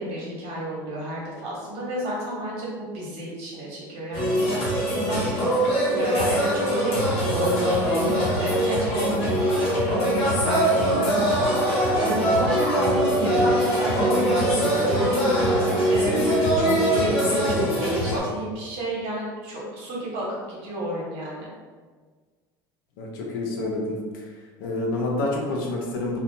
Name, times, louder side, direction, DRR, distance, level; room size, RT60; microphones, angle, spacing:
voice 1, 0.0-21.5, equal, 60° right, -5 dB, 1.1 m, -32 dB
sound 1, 4.1-18.2, equal, 55° left, 1.1 m, -22 dB
voice 2, 23.0-24.3 24.6-26.2, left 2 dB, 85° left, -1 dB, 0.6 m, -28 dB
2.5 x 2.2 x 2.6 m, 1.4 s
supercardioid pair, 100°, 11 cm